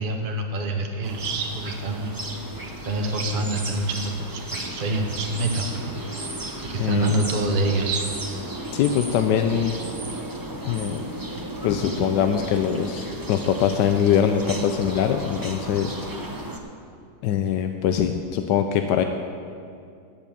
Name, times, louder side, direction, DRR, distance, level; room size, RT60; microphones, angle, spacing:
voice 1, 0.0-2.1 2.9-6.0 6.7-8.0, right 2 dB, 40° right, 2 dB, 0.9 m, -26 dB
sound 1, 1.0-16.6, right 1 dB, 20° right, 0.6 m, -34 dB
voice 2, 6.8-7.2 8.7-9.7 10.6-11.0 11.6-16.0 17.2-19.0, left 8 dB, 85° left, 6 dB, 1.3 m, -23 dB
16.5 x 5.9 x 7.1 m, 2.4 s
omnidirectional pair, 1.8 m